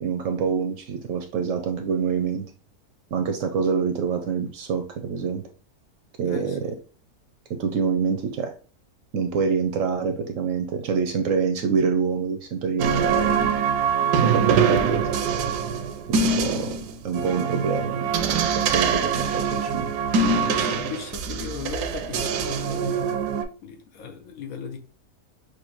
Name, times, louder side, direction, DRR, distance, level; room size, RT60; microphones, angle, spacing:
voice 1, 0.0-2.4 3.1-5.4 6.2-6.7 7.5-8.5 9.1-13.3 14.1-15.0 16.1-16.8 17.0-19.9, right 6 dB, 65° right, 6 dB, 0.9 m, -26 dB
voice 2, 6.3-6.8 20.5-23.2 23.6-24.8, left 7 dB, 65° left, 5 dB, 1.0 m, -37 dB
sound 1, 12.8-23.4, right 6 dB, 85° right, 1.2 m, -24 dB
6.1 x 2.6 x 2.9 m, 0.37 s
omnidirectional pair, 1.7 m